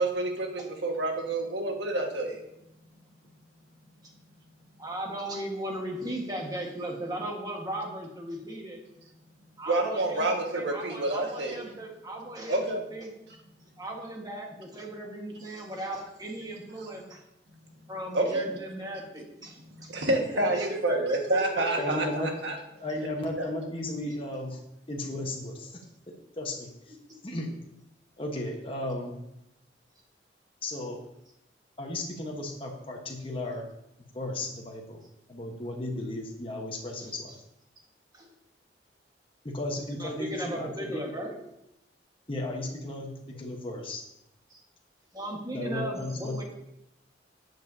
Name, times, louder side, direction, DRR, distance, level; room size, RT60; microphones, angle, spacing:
voice 1, 0.0-2.4 9.7-11.6 12.5-12.8 18.1-18.5 19.8-22.6 23.4-23.5, right 2 dB, 80° right, 2 dB, 1.7 m, -28 dB
voice 2, 4.8-8.8 9.6-13.1 13.8-17.2 17.9-19.9 20.5-21.8 37.0-37.1 38.1-38.3 39.9-41.4 44.5-44.6 45.1-46.4, right 1 dB, 20° right, 0 dB, 1.6 m, -37 dB
voice 3, 21.8-22.3 22.8-24.6 24.9-25.8 26.4-27.0 27.2-27.5 28.2-29.1 30.6-31.0 31.8-33.7 34.1-35.0 35.3-37.4 39.4-41.0 42.3-44.0 45.5-46.4, left 1 dB, 30° left, 0 dB, 1.2 m, -34 dB
11.5 x 8.1 x 2.8 m, 0.81 s
head